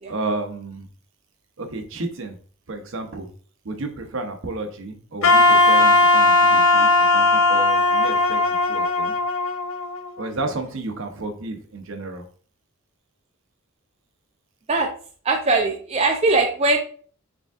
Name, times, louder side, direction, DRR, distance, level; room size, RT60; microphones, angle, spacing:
voice 1, 0.1-0.9 1.6-2.4 2.7-3.3 3.6-9.2 10.2-12.3, right 2 dB, 60° right, 5 dB, 0.7 m, -32 dB
Wind instrument woodwind instrument, 5.2-10.3, left 2 dB, 60° left, 0.5 m, -17 dB
voice 2, 15.2-16.8, right 3 dB, 30° right, 1 dB, 0.4 m, -20 dB
4.9 x 3.5 x 2.4 m, 0.44 s
head